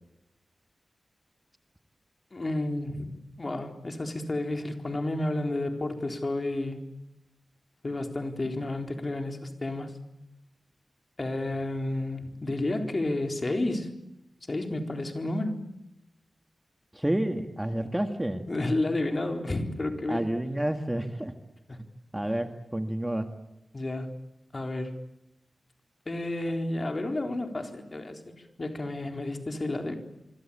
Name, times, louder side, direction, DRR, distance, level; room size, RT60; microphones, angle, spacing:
voice 1, 2.3-6.8 7.8-10.0 11.2-13.9 14.5-15.6 18.5-20.3 21.7-21.8 23.7-24.2 24.5-24.9 26.1-30.0, left 2 dB, 35° left, 4.0 m, -31 dB
voice 2, 16.9-18.4 20.1-21.3 22.1-23.3, right 1 dB, 10° right, 1.8 m, -29 dB
27.5 x 25.0 x 8.7 m
wide cardioid pair, 115°, 0 cm